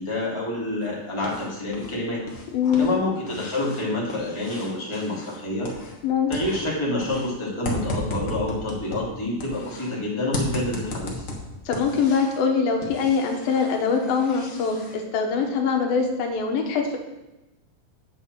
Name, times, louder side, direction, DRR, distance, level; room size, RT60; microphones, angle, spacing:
voice 1, 0.0-2.2 2.8-5.7 6.3-11.3, left 2 dB, 10° left, -5 dB, 2.3 m, -28 dB
sound 1, 0.8-1.9 2.2-6.1 6.3-9.9 10.3-12.4 12.8-14.9, left 1 dB, 50° left, 0.9 m, -35 dB
voice 2, 2.5-2.9 6.0-6.3 11.7-17.0, left 5 dB, 90° left, 3 dB, 3.1 m, -23 dB
9.9 x 5.3 x 7.5 m, 0.97 s
omnidirectional pair, 4.1 m